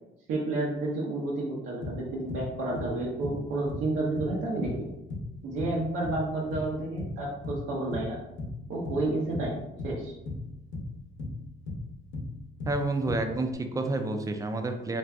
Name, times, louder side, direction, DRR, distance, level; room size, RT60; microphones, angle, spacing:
voice 1, 0.3-4.9 5.4-8.2 8.7-10.1, right 2 dB, 85° right, -4 dB, 0.7 m, -31 dB
sound 1, 1.8-2.5 2.8-3.0 3.2-3.9 4.2-5.3 5.6-6.3 6.5-7.1 7.4-7.7 7.9-8.6 8.8-10.0 10.3-11.4 11.7-12.8 13.1-13.5, left 2 dB, 70° left, 0.8 m, -36 dB
voice 2, 12.7-15.0, right 2 dB, 15° right, 6 dB, 0.4 m, -29 dB
2.6 x 2.2 x 3.4 m, 0.91 s
cardioid pair, 90°, 20 cm